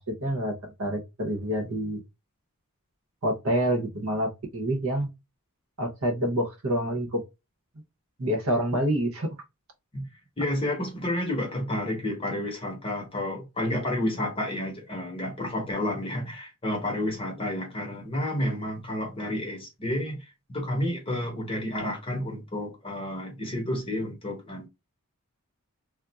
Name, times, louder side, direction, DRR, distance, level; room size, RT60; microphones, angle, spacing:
voice 1, 0.1-2.0 3.2-5.1 5.8-7.2 8.2-9.4, equal, 70° right, 0.8 m, -27 dB
voice 2, 10.4-24.7, left 1 dB, 25° left, 0.8 m, -30 dB
2.3 x 2.1 x 3.9 m
head